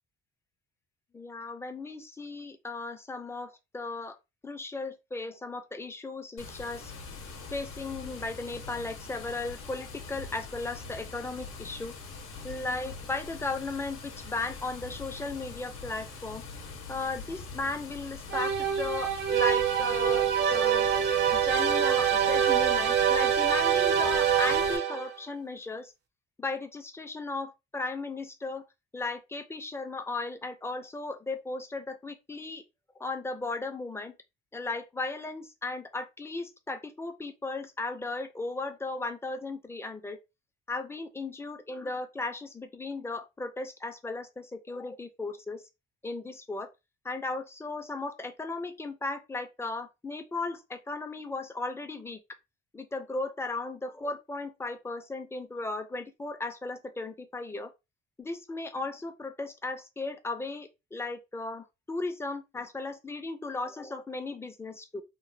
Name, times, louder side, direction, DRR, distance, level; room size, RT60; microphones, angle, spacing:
voice 1, 1.1-4.2 4.4-6.9 7.5-11.9 12.4-16.4 16.9-20.9 21.3-25.9 26.4-28.7 28.9-32.6 33.0-34.1 34.5-40.2 40.7-45.6 46.0-46.7 47.0-52.2 52.7-57.7 58.2-65.0, left 3 dB, 10° left, 0.4 m, -36 dB
Water, 6.4-24.8, left 4 dB, 90° left, 0.8 m, -43 dB
sound 1, 18.3-25.2, right 8 dB, 60° right, 0.4 m, -25 dB
3.0 x 2.1 x 2.6 m
cardioid pair, 115°, 20 cm